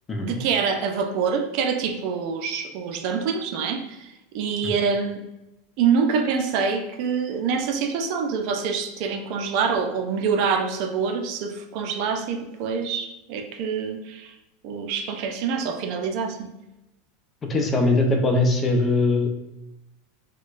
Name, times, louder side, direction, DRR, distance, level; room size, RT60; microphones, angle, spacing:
voice 1, 0.2-5.2 5.8-14.3 14.6-16.5, right 6 dB, 60° right, 4 dB, 0.5 m, -26 dB
voice 2, 17.5-19.3, left 2 dB, 25° left, 2 dB, 0.6 m, -21 dB
4.2 x 2.2 x 2.5 m, 0.91 s
supercardioid pair, 120°, 0 cm